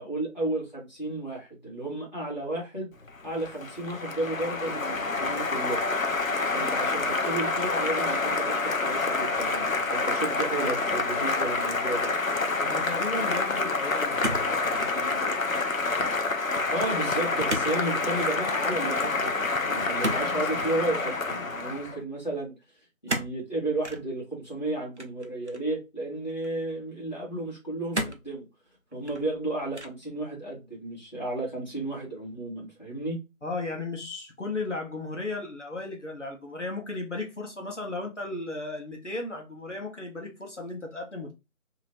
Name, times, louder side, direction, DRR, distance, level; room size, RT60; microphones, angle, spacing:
voice 1, 0.0-2.9 3.2-5.9 6.5-12.2 16.7-22.5 23.0-28.5 28.9-33.2, right 2 dB, 35° left, 1.4 m, -33 dB
Applause, 3.1-22.0, left 3 dB, 75° left, 0.7 m, -28 dB
voice 2, 12.6-15.4 33.4-41.3, left 2 dB, 60° left, 1.0 m, -35 dB
sound 1, 14.2-15.0 15.3-15.8 17.5-17.8 18.0-18.3 20.0-20.8 23.1-23.4 23.8-24.0 25.0-25.7 26.4-26.5 27.9-28.3 28.9-29.4 29.7-30.1, right 1 dB, 55° right, 0.7 m, -33 dB
2.8 x 2.6 x 3.0 m
figure-of-eight pair, 175°, 41 cm